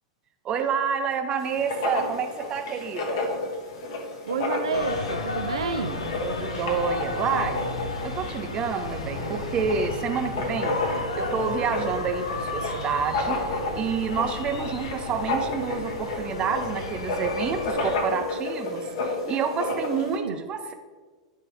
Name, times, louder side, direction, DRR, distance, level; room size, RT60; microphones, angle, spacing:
voice 1, 0.4-3.2 6.2-7.6 8.0-10.8 11.1-13.4 13.7-20.7, right 6 dB, 30° right, 6 dB, 0.8 m, -28 dB
Writing, 1.4-20.2, left 2 dB, 55° left, 1.1 m, -31 dB
voice 2, 4.3-6.0 20.0-20.4, right 6 dB, 75° right, 8 dB, 0.4 m, -30 dB
sound 1, 4.7-18.0, left 3 dB, 75° left, 0.8 m, -34 dB
9.1 x 3.4 x 4.7 m, 1.4 s
figure-of-eight pair, 95°, 3 cm